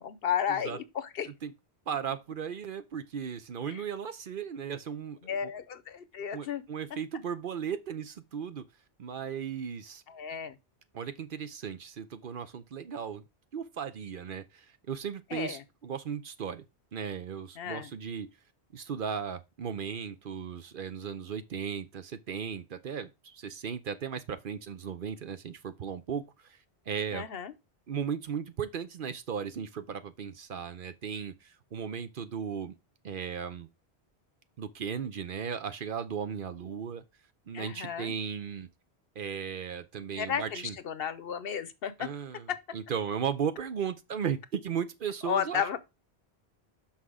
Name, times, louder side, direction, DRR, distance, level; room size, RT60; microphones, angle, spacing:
voice 1, 0.0-1.3 3.7-3.8 5.2-6.6 10.1-10.6 15.3-15.6 17.6-17.9 27.1-27.5 37.5-38.1 40.2-42.1 42.5-42.6 45.3-45.9, left 8 dB, 65° left, 0.9 m, -33 dB
voice 2, 1.9-5.5 6.3-8.7 9.0-10.0 10.9-13.2 13.5-16.6 16.9-18.3 18.7-26.6 26.9-27.2 27.9-32.8 33.0-33.7 34.6-37.0 37.5-38.7 39.2-40.8 42.0-45.6, right 7 dB, 60° right, 0.8 m, -36 dB
5.9 x 5.7 x 4.9 m
omnidirectional pair, 1.1 m